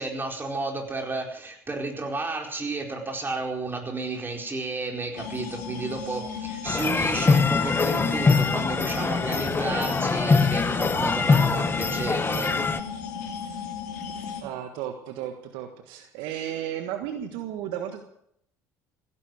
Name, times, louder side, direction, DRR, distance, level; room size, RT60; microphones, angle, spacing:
voice 1, 0.0-12.6, right 3 dB, 20° right, 2 dB, 4.6 m, -32 dB
sound 1, 5.2-14.4, left 6 dB, 80° left, 2.9 m, -36 dB
sound 2, 6.7-12.8, left 4 dB, 25° left, 1.2 m, -23 dB
voice 2, 14.4-18.0, right 10 dB, 70° right, 6 dB, 1.5 m, -34 dB
16.5 x 10.5 x 7.9 m, 0.72 s
hypercardioid pair, 60°, 9 cm